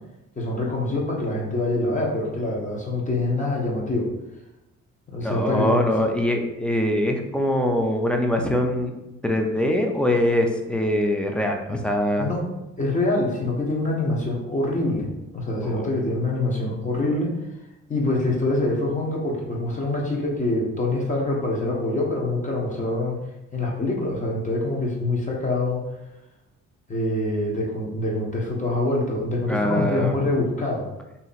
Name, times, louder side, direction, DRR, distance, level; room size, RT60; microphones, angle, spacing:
voice 1, 0.4-4.1 5.1-5.9 12.2-12.4 12.8-17.3 17.9-23.2 23.5-25.8 26.9-30.9, left 2 dB, 25° left, -3 dB, 1.0 m, -25 dB
voice 2, 5.2-8.9 9.2-12.3 15.6-15.8 29.5-30.2, left 1 dB, 5° left, 3 dB, 0.5 m, -23 dB
2.8 x 2.8 x 4.1 m, 0.95 s
cardioid pair, 90°, 30 cm